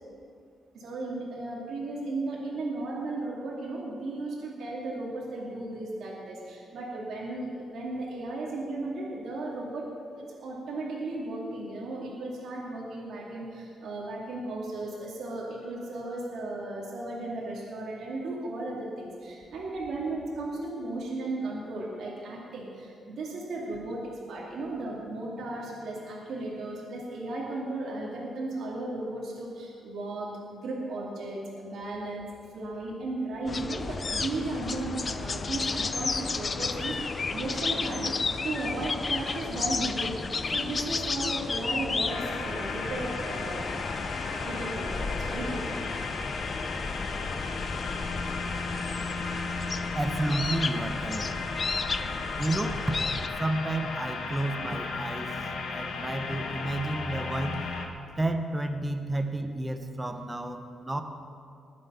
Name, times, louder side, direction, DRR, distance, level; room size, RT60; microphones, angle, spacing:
voice 1, 0.7-24.0 24.3-32.3 32.5-40.2 40.4-43.7 44.4-45.8, right 2 dB, 70° right, -4 dB, 2.6 m, -35 dB
sound 1, 33.5-53.3, left 4 dB, 30° left, 0.5 m, -33 dB
sound 2, 42.1-57.9, left 4 dB, 75° left, 1.4 m, -35 dB
voice 2, 49.9-51.3 52.4-53.0 53.4-57.6 58.2-61.0, right 1 dB, 10° right, 6 dB, 0.9 m, -31 dB
20.5 x 7.5 x 5.7 m, 2.4 s
cardioid pair, 140°, 0 cm